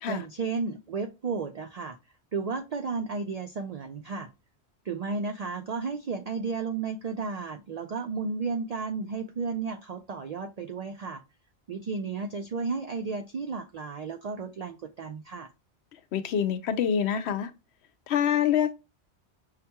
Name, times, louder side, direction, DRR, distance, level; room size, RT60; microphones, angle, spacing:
voice 1, 0.1-2.0 2.3-4.3 4.8-11.2 11.7-15.5, right 4 dB, 65° right, 0.3 m, -33 dB
voice 2, 16.1-17.5 18.1-18.7, left 8 dB, 70° left, 0.8 m, -26 dB
5.7 x 2.2 x 2.8 m
omnidirectional pair, 1.2 m